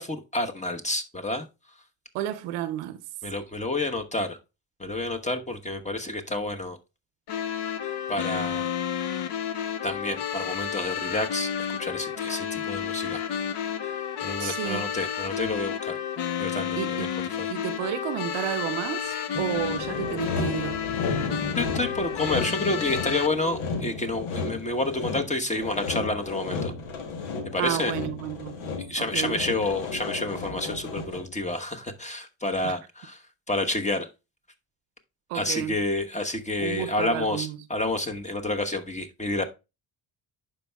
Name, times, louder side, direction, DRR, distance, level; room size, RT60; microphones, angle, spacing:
voice 1, 0.0-1.5 3.2-4.4 4.8-6.8 8.1-8.7 9.8-11.5 11.8-13.2 14.2-16.0 16.4-17.1 17.4-17.5 21.6-26.7 27.5-27.9 28.9-34.1 35.3-39.4, left 2 dB, 15° left, 1.1 m, -29 dB
voice 2, 2.1-3.0 14.4-14.9 16.8-17.2 17.5-20.8 27.6-29.4 32.6-32.7 35.3-35.8 36.6-37.6, right 13 dB, 85° right, 0.7 m, -32 dB
sound 1, 7.3-23.3, left 8 dB, 55° left, 0.9 m, -31 dB
Sawing, 19.4-31.4, left 4 dB, 85° left, 1.3 m, -33 dB
11.0 x 4.5 x 2.3 m
supercardioid pair, 70°, 49 cm